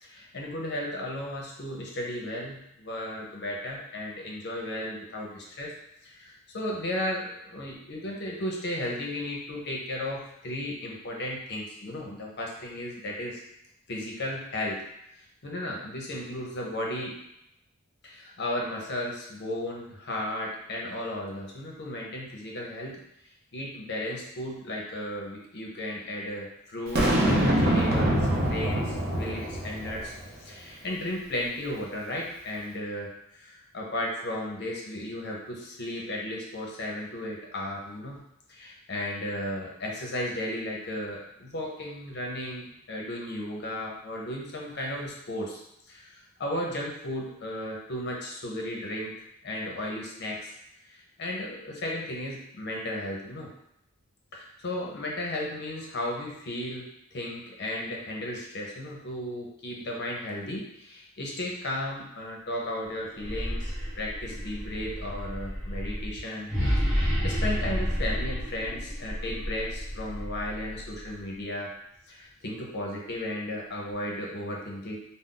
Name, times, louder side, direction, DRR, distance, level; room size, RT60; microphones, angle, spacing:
voice 1, 0.0-5.7 6.0-13.4 13.9-14.8 15.4-17.2 18.0-23.0 23.5-30.1 30.4-38.2 38.5-45.6 45.9-50.5 50.9-53.5 54.3-66.5 66.8-71.7 72.1-75.0, left 1 dB, 50° left, -2 dB, 0.7 m, -35 dB
Boom, 26.9-30.3, right 1 dB, 50° right, 0.6 m, -24 dB
sound 1, 63.1-71.2, equal, 5° right, 1.1 m, -31 dB
2.5 x 2.0 x 3.7 m, 0.80 s
head